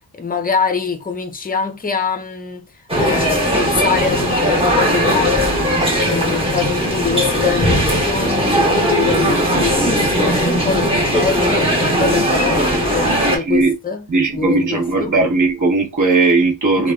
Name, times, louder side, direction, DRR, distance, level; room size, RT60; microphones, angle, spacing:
voice 1, 0.2-2.6 3.0-15.1 16.8-16.9, left 5 dB, 20° left, 0.5 m, -24 dB
sound 1, 2.9-13.4, equal, 15° right, 1.1 m, -17 dB
voice 2, 13.2-13.7 14.1-16.9, right 3 dB, 45° right, 1.2 m, -17 dB
3.3 x 2.3 x 2.2 m
wide cardioid pair, 110°, 43 cm